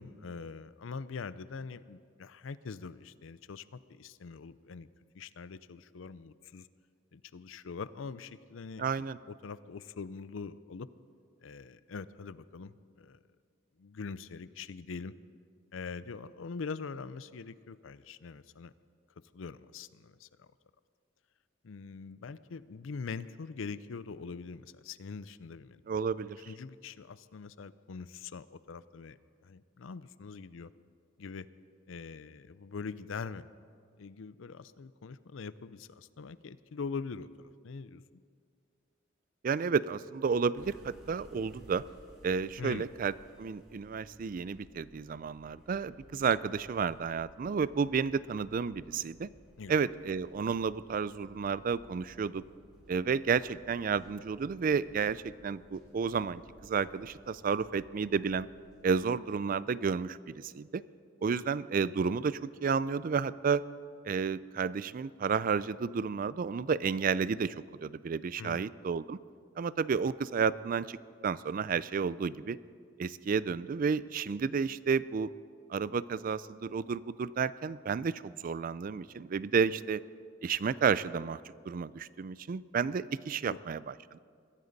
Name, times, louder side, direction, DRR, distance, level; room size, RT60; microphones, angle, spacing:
voice 1, 0.0-4.9 5.1-6.7 7.1-10.9 11.4-13.2 13.8-15.1 15.7-18.7 19.3-20.5 21.6-25.8 26.2-29.2 29.4-30.7 31.2-31.5 31.9-33.5 34.0-38.2 42.6-42.9 49.6-49.7 68.4-68.7 83.4-83.6, left 5 dB, 80° left, 16 dB, 0.5 m, -43 dB
voice 2, 8.8-9.2 25.9-26.4 39.4-41.8 42.2-43.1 43.4-49.3 49.7-52.4 52.9-58.5 58.8-60.8 61.2-63.6 64.1-67.5 67.8-69.2 69.6-71.0 71.2-72.6 73.0-75.3 75.7-80.0 80.4-81.4 81.7-84.2, right 5 dB, 45° right, 18 dB, 0.4 m, -31 dB
sound 1, 40.5-58.9, equal, 5° right, 3.0 m, -58 dB
22.0 x 15.5 x 4.1 m, 2.2 s
head